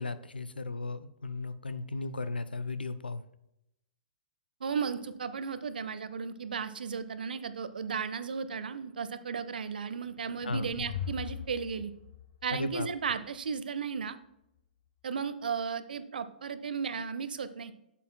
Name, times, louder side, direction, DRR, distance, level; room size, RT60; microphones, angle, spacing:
voice 1, 0.0-3.2 10.4-10.7 12.5-12.9, left 3 dB, 85° left, 14 dB, 0.6 m, -35 dB
voice 2, 4.6-11.9 12.4-14.2 15.0-17.7, right 6 dB, 70° right, 12 dB, 0.6 m, -35 dB
sound 1, 10.0-13.5, left 8 dB, 55° left, 1.2 m, -41 dB
8.2 x 7.3 x 2.2 m, 0.84 s
figure-of-eight pair, 115°, 5 cm